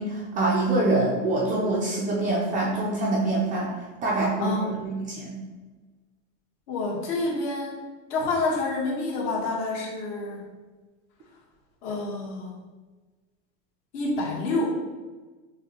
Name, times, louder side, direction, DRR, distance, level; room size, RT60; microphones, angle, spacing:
voice 1, 0.0-5.4, right 2 dB, 20° right, -3 dB, 0.4 m, -25 dB
voice 2, 4.4-4.8 6.7-7.8 8.1-10.4 11.8-12.5 13.9-14.7, left 2 dB, 60° left, -3 dB, 1.4 m, -28 dB
6.5 x 2.2 x 2.9 m, 1.3 s
supercardioid pair, 150°, 40 cm